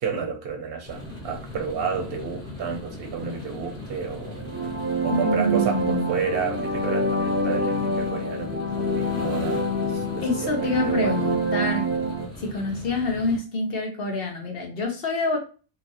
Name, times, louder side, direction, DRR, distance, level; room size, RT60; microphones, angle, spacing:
voice 1, 0.0-4.4 5.0-9.6 9.9-11.3, right 6 dB, 70° right, 0.9 m, -31 dB
sound 1, 0.8-13.4, left 1 dB, 5° left, 1.1 m, -39 dB
sound 2, 4.3-12.3, right 1 dB, 25° right, 0.3 m, -26 dB
voice 2, 5.1-6.2 10.2-11.8 12.4-15.4, left 2 dB, 65° left, 1.0 m, -26 dB
2.9 x 2.4 x 2.7 m
omnidirectional pair, 1.1 m